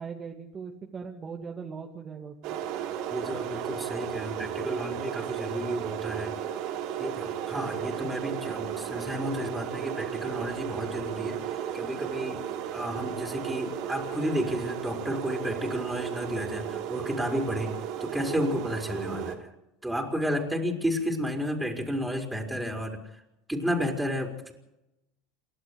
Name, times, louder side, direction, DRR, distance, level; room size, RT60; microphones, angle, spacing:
voice 1, 0.0-2.6, right 5 dB, 30° right, 1 dB, 2.3 m, -40 dB
sound 1, 2.4-19.4, right 9 dB, 60° right, 3.3 m, -34 dB
voice 2, 3.1-6.4 7.0-12.4 12.7-17.7 18.0-19.5 19.8-23.2 23.5-24.5, equal, 5° right, 2 dB, 4.8 m, -32 dB
28.5 x 12.0 x 8.0 m, 0.91 s
hypercardioid pair, 80°, 0 cm